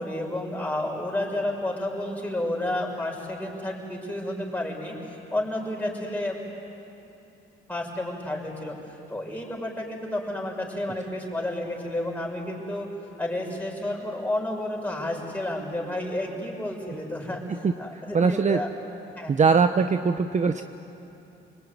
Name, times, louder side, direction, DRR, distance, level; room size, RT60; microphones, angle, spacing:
voice 1, 0.0-6.4 7.7-12.9 13.2-18.7 19.2-19.4, left 1 dB, 5° left, -1 dB, 6.3 m, -31 dB
voice 2, 18.1-18.6 19.3-20.6, right 5 dB, 35° right, 8 dB, 0.9 m, -21 dB
29.5 x 21.0 x 9.5 m, 2.9 s
cardioid pair, 90°, 20 cm